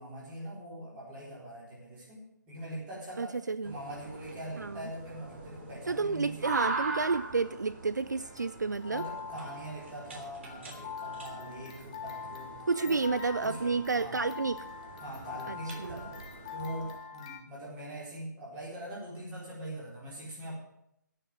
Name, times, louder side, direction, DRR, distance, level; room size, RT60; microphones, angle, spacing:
voice 1, 0.0-6.6 8.9-13.1 13.4-14.3 15.0-16.2 16.5-20.5, right 1 dB, 10° right, -6 dB, 4.1 m, -42 dB
voice 2, 3.2-3.7 4.6-4.9 5.9-9.0 12.7-14.7 15.5-16.0, right 4 dB, 65° right, 15 dB, 0.5 m, -31 dB
sound 1, 3.6-16.9, right 3 dB, 35° right, 3.3 m, -42 dB
sound 2, 8.2-17.4, left 6 dB, 20° left, 1.1 m, -44 dB
16.5 x 6.6 x 7.7 m, 0.78 s
figure-of-eight pair, 155°, 11 cm